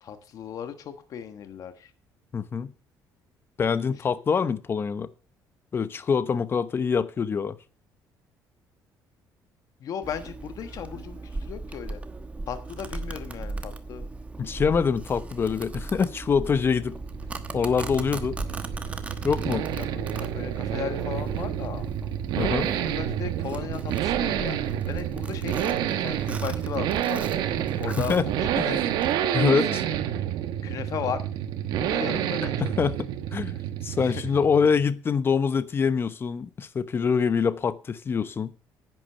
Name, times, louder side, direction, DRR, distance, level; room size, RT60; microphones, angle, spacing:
voice 1, 0.0-1.9 9.8-12.0 12.5-14.0 19.7-21.9 22.6-24.6 24.9-27.2 27.8-28.1 28.4-28.8 29.5-29.8 30.6-31.2 31.8-32.7 34.0-34.2, left 8 dB, 50° left, 1.3 m, -36 dB
voice 2, 2.3-2.7 3.6-5.1 5.7-7.5 14.4-17.0 17.5-18.4 19.2-19.7 22.4-22.7 28.0-28.3 28.6-28.8 29.3-29.8 32.6-33.5 33.8-38.5, left 6 dB, 30° left, 0.9 m, -25 dB
Domestic sounds home sounds, 10.0-29.1, right 3 dB, 20° right, 1.1 m, -38 dB
sound 1, 16.8-34.8, right 10 dB, 80° right, 1.3 m, -29 dB
10.5 x 9.5 x 5.7 m
cardioid pair, 135°, 7 cm